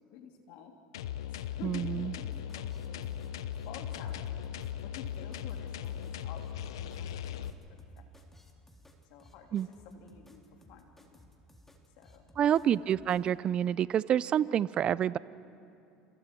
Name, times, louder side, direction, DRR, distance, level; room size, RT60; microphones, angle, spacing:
voice 1, 0.1-0.7 1.3-3.1 3.4-4.5 4.8-8.0 9.0-10.4 10.7-11.3 12.0-12.2 12.6-13.0, left 7 dB, 70° left, 3 dB, 3.1 m, -50 dB
sound 1, 0.9-7.5, left 9 dB, 85° left, 0.8 m, -38 dB
voice 2, 1.6-2.1 9.5-9.7 12.4-15.2, right 10 dB, 45° right, 19 dB, 0.5 m, -28 dB
sound 2, 2.1-13.3, left 1 dB, 10° left, 3.3 m, -58 dB
28.5 x 28.0 x 4.6 m, 2.6 s
hypercardioid pair, 85°, 2 cm